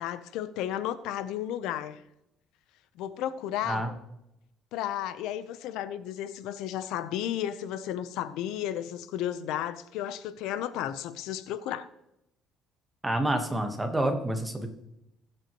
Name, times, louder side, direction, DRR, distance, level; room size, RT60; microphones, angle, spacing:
voice 1, 0.0-2.0 3.0-3.8 4.7-11.9, left 11 dB, 85° left, 0.7 m, -33 dB
voice 2, 13.0-14.7, right 1 dB, 5° right, 1.3 m, -28 dB
20.5 x 7.6 x 3.0 m
cardioid pair, 165°, 0 cm